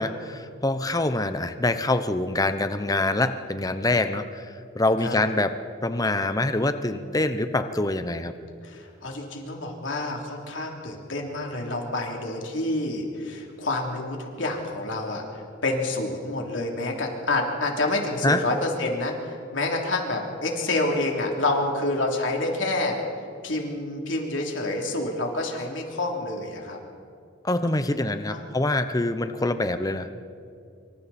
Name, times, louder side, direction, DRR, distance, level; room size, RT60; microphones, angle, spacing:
voice 1, 0.0-4.5 4.7-5.6 5.8-8.3 18.2-18.4 27.4-30.2, left 2 dB, 20° left, 9 dB, 0.8 m, -25 dB
voice 2, 8.6-23.0 23.4-26.8 28.3-28.5, left 2 dB, 75° left, 0 dB, 3.3 m, -28 dB
26.0 x 25.0 x 4.3 m, 2.4 s
head